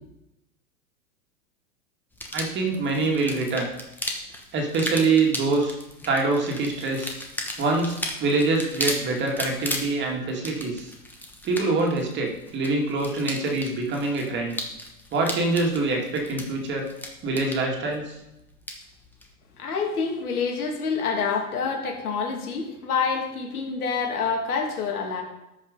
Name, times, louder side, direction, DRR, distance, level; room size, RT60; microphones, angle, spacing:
sound 1, 2.1-19.3, left 1 dB, 5° left, 1.1 m, -36 dB
voice 1, 2.3-3.7 4.5-5.8 6.1-7.1 7.6-10.9 11.4-14.6 15.1-16.9 17.2-18.2, right 3 dB, 25° right, 1 dB, 2.1 m, -25 dB
voice 2, 19.6-25.2, left 5 dB, 80° left, 1 dB, 2.7 m, -27 dB
13.0 x 5.4 x 5.2 m, 0.90 s
hypercardioid pair, 135°, 44 cm